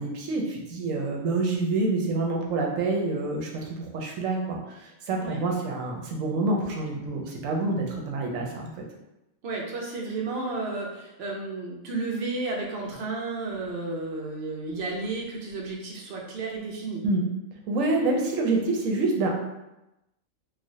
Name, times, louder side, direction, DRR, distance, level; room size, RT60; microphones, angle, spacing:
voice 1, 0.0-8.7 17.0-17.2 17.7-19.3, right 2 dB, 80° right, 0 dB, 1.0 m, -27 dB
voice 2, 9.4-17.0, right 3 dB, 60° right, -1 dB, 0.8 m, -32 dB
3.1 x 2.3 x 2.6 m, 0.94 s
omnidirectional pair, 1.4 m